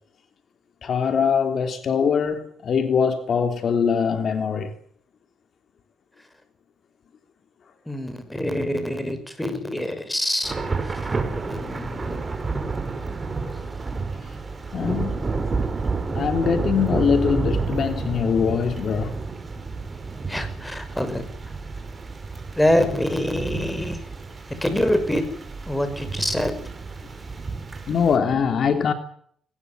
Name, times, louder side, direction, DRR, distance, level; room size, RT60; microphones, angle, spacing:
voice 1, 0.8-4.7 14.7-15.3 16.1-19.2 27.9-28.9, left 6 dB, 55° left, 3.2 m, -22 dB
voice 2, 7.9-10.6 10.8-11.1 11.5-12.2 20.3-21.3 22.5-24.0 24.6-25.2 25.7-26.5, left 1 dB, 5° left, 6.1 m, -25 dB
Thunder / Rain, 10.4-28.2, right 4 dB, 25° right, 5.9 m, -30 dB
21.0 x 19.5 x 9.6 m
cardioid pair, 90°, 0 cm